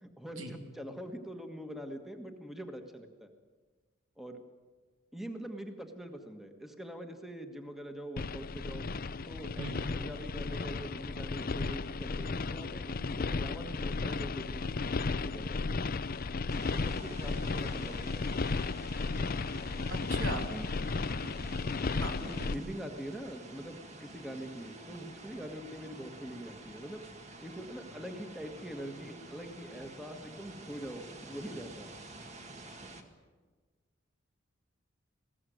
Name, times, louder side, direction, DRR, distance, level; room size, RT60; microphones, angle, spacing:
voice 1, 0.0-3.3 4.2-4.4 5.1-8.9 9.2-15.8 16.7-18.3 20.3-20.7 21.1-21.4 22.0-27.0 27.4-31.9, equal, ahead, 5 dB, 1.6 m, -44 dB
sound 1, 8.2-22.5, left 3 dB, 45° left, 0.6 m, -34 dB
sound 2, 16.5-33.0, right 2 dB, 35° right, 1.9 m, -50 dB
voice 2, 19.9-20.5 22.0-22.6, right 2 dB, 80° right, 4 dB, 3.0 m, -40 dB
21.0 x 16.0 x 9.4 m, 1.4 s
head